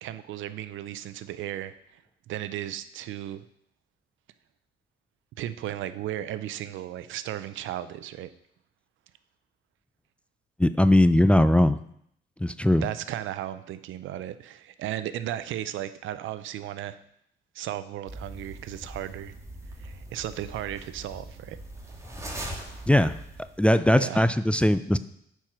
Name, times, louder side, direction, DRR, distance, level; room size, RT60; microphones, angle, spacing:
voice 1, 0.0-1.7 2.3-3.4 5.4-8.3 12.8-17.0 17.5-19.3 19.8-21.6 23.9-24.3, right 12 dB, 80° right, 14 dB, 0.6 m, -35 dB
voice 2, 10.6-11.8 12.4-12.9 22.9-23.2 23.6-25.0, left 1 dB, 5° left, 12 dB, 0.3 m, -20 dB
sound 1, 18.1-23.7, right 1 dB, 15° right, 1.9 m, -41 dB
8.8 x 4.6 x 5.9 m, 0.72 s
cardioid pair, 90°, 20 cm